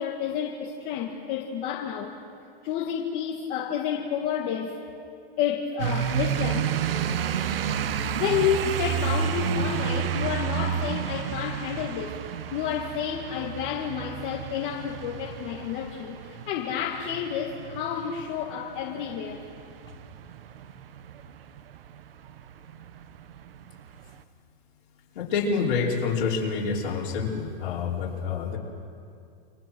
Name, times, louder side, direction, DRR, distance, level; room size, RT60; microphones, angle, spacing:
voice 1, 0.0-2.2 2.6-4.8 5.4-6.8 8.2-19.4, left 8 dB, 35° left, -1 dB, 2.0 m, -30 dB
sound 1, 5.8-24.2, right 8 dB, 70° right, 1.5 m, -31 dB
voice 2, 25.2-28.6, left 5 dB, 55° left, -3 dB, 5.4 m, -27 dB
29.5 x 26.0 x 6.2 m, 2.4 s
hypercardioid pair, 150°, 29 cm